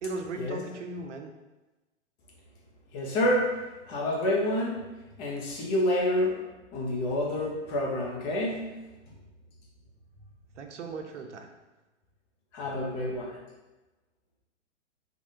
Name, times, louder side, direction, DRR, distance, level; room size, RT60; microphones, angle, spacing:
voice 1, 0.0-1.3 10.6-11.5, right 3 dB, 70° right, 4 dB, 0.6 m, -37 dB
voice 2, 2.9-4.8 5.2-6.4 6.7-8.8 12.5-13.3, left 1 dB, 30° left, -3 dB, 0.8 m, -28 dB
3.2 x 2.5 x 2.7 m, 1.1 s
hypercardioid pair, 115°, 37 cm